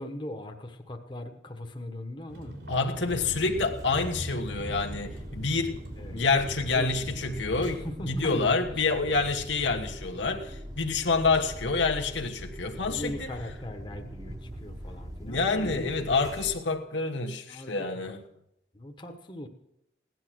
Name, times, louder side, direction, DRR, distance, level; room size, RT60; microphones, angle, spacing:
voice 1, 0.0-2.6 3.1-3.3 6.0-6.2 6.7-7.4 7.7-8.6 9.1-9.4 12.9-15.9 17.5-18.2 18.7-19.5, left 1 dB, 25° left, 3 dB, 1.1 m, -39 dB
Vehicle, 2.3-7.8, right 1 dB, 75° right, 4.0 m, -41 dB
voice 2, 2.7-5.8 6.1-13.3 15.2-18.2, left 4 dB, 75° left, 4 dB, 1.3 m, -28 dB
sound 1, 3.1-16.6, equal, 20° right, 1.1 m, -42 dB
17.0 x 11.0 x 6.2 m, 0.84 s
head